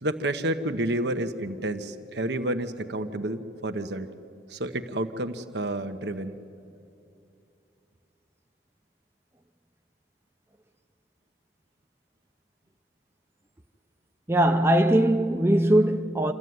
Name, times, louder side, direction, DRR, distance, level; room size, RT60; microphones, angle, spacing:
voice 1, 0.0-4.1 4.5-6.3, right 1 dB, 70° right, 1.1 m, -30 dB
voice 2, 14.3-16.3, right 1 dB, 15° right, 0.6 m, -21 dB
27.0 x 13.5 x 9.5 m
head